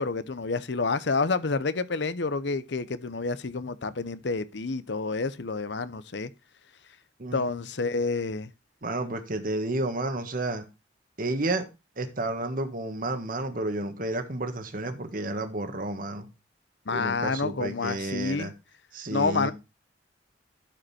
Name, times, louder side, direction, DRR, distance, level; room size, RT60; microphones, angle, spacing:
voice 1, 0.0-6.3 7.3-8.5 16.9-18.5 19.1-19.5, left 4 dB, 70° left, 0.8 m, -29 dB
voice 2, 8.8-10.6 11.2-11.7 12.0-16.3 16.9-18.5 18.9-19.5, right 2 dB, 50° right, 1.5 m, -31 dB
12.0 x 5.4 x 4.2 m
head